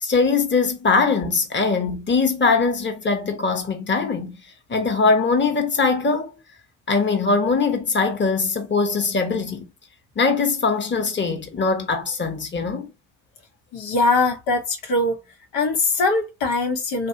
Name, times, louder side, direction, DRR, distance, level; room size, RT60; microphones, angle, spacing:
voice 1, 0.0-4.3 4.7-6.3 6.9-9.6 10.2-12.9, left 4 dB, 25° left, 1.0 m, -21 dB
voice 2, 13.7-15.2 15.5-17.1, left 2 dB, 80° left, 1.2 m, -21 dB
3.0 x 2.5 x 2.8 m
supercardioid pair, 60°, 43 cm